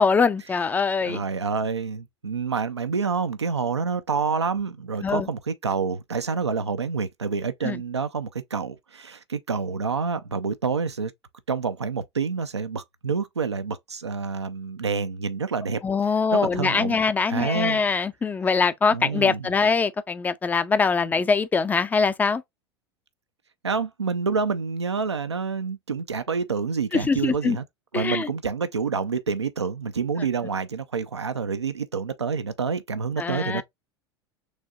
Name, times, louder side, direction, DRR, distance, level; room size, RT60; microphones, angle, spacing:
voice 1, 0.0-1.2 5.0-5.3 7.6-7.8 15.8-22.4 26.9-27.6 27.9-28.3 33.2-33.6, left 4 dB, 10° left, 0.4 m, -23 dB
voice 2, 1.0-11.1 11.5-15.8 16.3-17.0 17.3-17.8 18.9-19.5 23.6-27.6 27.9-33.6, right 5 dB, 80° right, 0.5 m, -28 dB
6.2 x 2.7 x 2.3 m
figure-of-eight pair, 85°, 14 cm